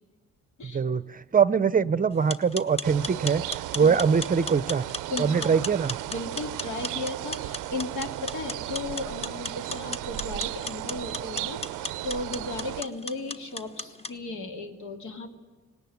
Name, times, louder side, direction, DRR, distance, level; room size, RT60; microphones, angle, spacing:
voice 1, 0.6-3.4 3.7-4.8 5.2-6.0, right 6 dB, 30° right, 16 dB, 0.6 m, -23 dB
sound 1, 2.1-14.1, left 2 dB, 20° left, 1.1 m, -38 dB
sound 2, 2.8-12.8, right 16 dB, 90° right, 0.6 m, -35 dB
voice 2, 5.1-5.6 6.1-15.3, left 2 dB, 75° left, 4 dB, 2.7 m, -35 dB
19.0 x 17.5 x 9.4 m, 1.3 s
cardioid pair, 90°, 30 cm